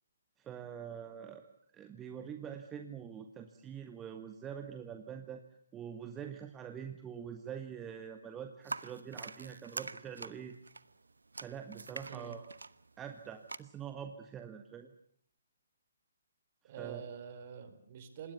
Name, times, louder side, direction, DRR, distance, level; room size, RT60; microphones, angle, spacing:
voice 1, 0.4-1.5 1.7-5.4 5.7-10.5 11.4-12.5 13.0-14.9 16.8-17.0, right 8 dB, 15° right, 6 dB, 1.6 m, -45 dB
sound 1, 8.6-13.6, right 3 dB, 80° right, 1.2 m, -45 dB
voice 2, 16.6-18.3, right 7 dB, 40° right, 10 dB, 4.5 m, -46 dB
26.5 x 20.5 x 7.0 m, 0.64 s
figure-of-eight pair, 140°, 0 cm